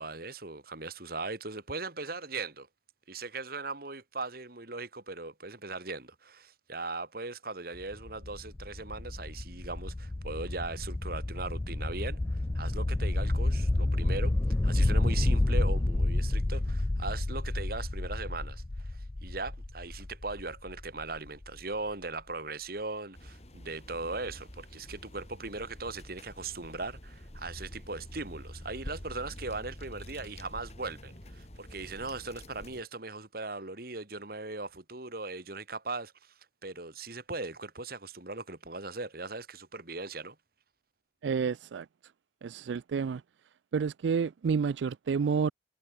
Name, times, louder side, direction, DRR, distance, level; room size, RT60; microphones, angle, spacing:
voice 1, 0.0-2.7 3.1-14.3 14.6-36.3 36.6-40.4, right 3 dB, 55° right, 2.7 m, -39 dB
sound 1, 7.8-21.5, left 2 dB, 15° left, 0.3 m, -30 dB
sound 2, 23.1-32.8, left 1 dB, 35° left, 3.4 m, -47 dB
voice 2, 41.2-41.9 42.4-43.2 43.7-45.5, right 6 dB, 80° right, 0.4 m, -29 dB
head